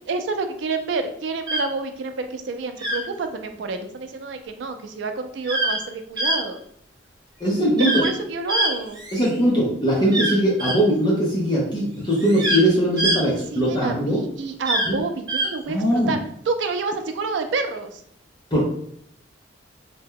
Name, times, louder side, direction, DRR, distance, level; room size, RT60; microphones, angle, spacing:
voice 1, 0.1-6.6 7.8-9.0 13.2-16.2 16.5-18.0, right 4 dB, 70° right, 7 dB, 0.4 m, -28 dB
sound 1, 1.5-1.6 2.8-3.0 5.4-5.8 6.2-6.4 7.8-8.1 8.5-9.4 10.1-10.8 12.1-12.6 13.0-13.2 14.6-14.9 15.3-15.5, right 1 dB, 20° right, 0.6 m, -23 dB
voice 2, 7.4-8.0 9.1-14.2 14.9-15.0 15.7-16.1 18.5-18.6, equal, 20° left, -4 dB, 0.6 m, -20 dB
2.7 x 2.1 x 3.6 m, 0.68 s
head